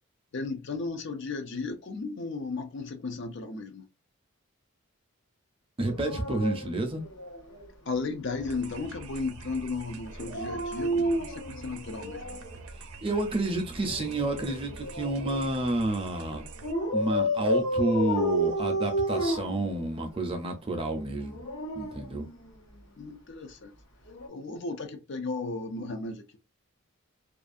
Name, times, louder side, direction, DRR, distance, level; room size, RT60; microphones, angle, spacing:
voice 1, 0.3-3.9 7.9-12.4 23.0-23.7 24.3-26.4, left 3 dB, 55° left, 0.4 m, -35 dB
Dog, 5.8-7.7 10.1-12.5 13.8-15.5 16.6-20.2 21.2-22.8 24.1-24.3, equal, 90° left, 1.1 m, -31 dB
voice 2, 5.8-7.0 13.0-16.5 16.9-21.4 21.7-22.3, right 2 dB, 25° right, 0.5 m, -30 dB
sound 1, 8.4-16.7, right 3 dB, 85° right, 0.5 m, -45 dB
2.5 x 2.4 x 2.4 m
head